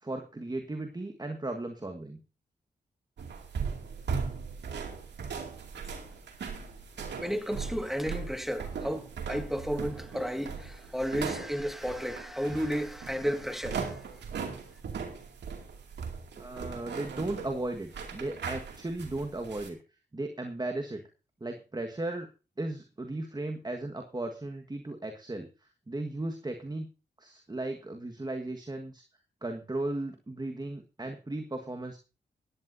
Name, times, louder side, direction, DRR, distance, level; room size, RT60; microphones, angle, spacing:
voice 1, 0.0-2.2 16.4-19.8 20.1-21.0 21.4-22.3 22.6-25.5 25.9-26.9 27.2-29.0 29.4-32.0, right 2 dB, 25° right, 1.6 m, -36 dB
sound 1, 3.2-19.7, right 5 dB, 80° right, 2.4 m, -38 dB
voice 2, 7.2-14.0, equal, ahead, 1.8 m, -33 dB
17.0 x 11.0 x 2.7 m
supercardioid pair, 45°, 18 cm